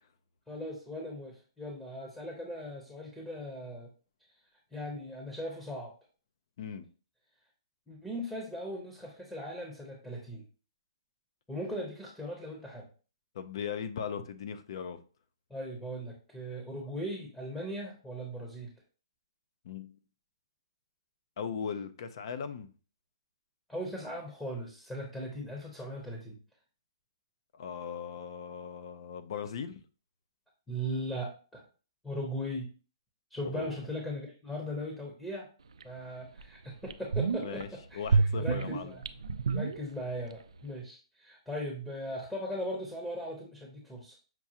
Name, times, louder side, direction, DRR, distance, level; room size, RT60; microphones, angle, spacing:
voice 1, 0.5-3.9 4.7-5.9 7.9-10.4 11.5-12.9 15.5-18.7 23.7-26.4 30.7-31.6 32.0-32.7 33.3-35.5 35.8-38.0 38.4-39.0 39.5-44.1, equal, 5° left, 0.8 m, -38 dB
voice 2, 13.3-15.0 19.6-20.0 21.4-22.7 27.5-29.8 33.5-33.8 37.4-37.7 37.9-38.9, left 7 dB, 55° left, 0.5 m, -38 dB
sound 1, 35.8-35.9 36.4-36.5 36.8-37.6 38.1-40.3 40.6-40.7, right 4 dB, 85° right, 0.3 m, -29 dB
5.9 x 2.3 x 2.8 m
hypercardioid pair, 145°, 3 cm